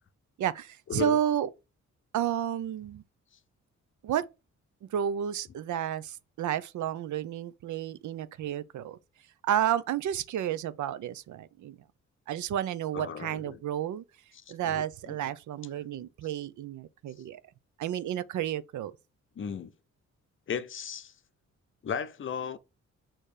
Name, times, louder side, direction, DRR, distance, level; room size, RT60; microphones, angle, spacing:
voice 1, 0.4-1.5 2.1-3.0 4.0-4.2 4.9-9.0 9.4-11.8 12.3-14.0 14.5-17.4 17.8-18.9, right 10 dB, 80° right, 0.6 m, -31 dB
voice 2, 12.9-13.6 14.6-15.2 19.4-19.7 20.5-21.1 21.8-22.6, left 7 dB, 45° left, 0.6 m, -35 dB
6.6 x 3.0 x 4.9 m
cardioid pair, 135°, 29 cm